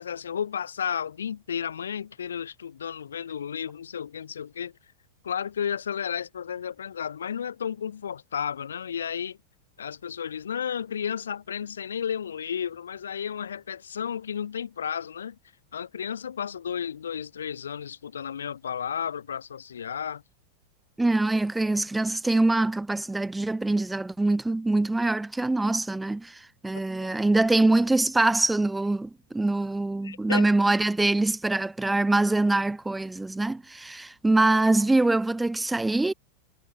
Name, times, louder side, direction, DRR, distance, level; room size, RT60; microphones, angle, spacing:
voice 1, 0.0-4.7 5.2-9.4 9.8-15.4 15.7-20.2 27.0-27.1 30.0-30.5, left 8 dB, 65° left, 3.8 m, -33 dB
voice 2, 21.0-36.1, right 2 dB, 5° right, 3.9 m, -24 dB
figure-of-eight pair, 90°, 0 cm